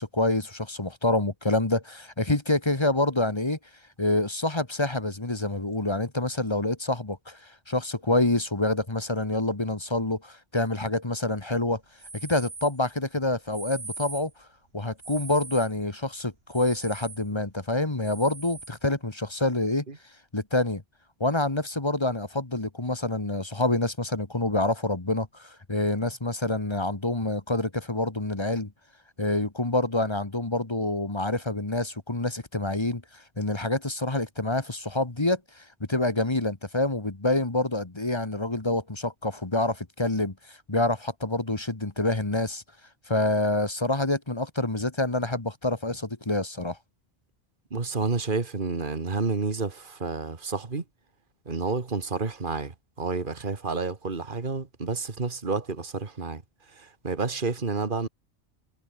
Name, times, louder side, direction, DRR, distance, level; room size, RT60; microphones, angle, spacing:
voice 1, 0.0-3.6 4.0-11.8 12.1-14.5 14.7-19.9 20.3-20.8 21.2-28.7 29.2-42.6 43.1-46.8, left 2 dB, 25° left, 1.8 m, -27 dB
sound 1, 12.0-12.8 13.5-14.3 15.0-15.8 16.5-17.3 18.0-18.8, right 3 dB, 70° right, 2.7 m, -41 dB
voice 2, 47.7-50.8 51.5-56.4 56.7-58.1, right 4 dB, 55° right, 2.1 m, -30 dB
omnidirectional pair, 1.0 m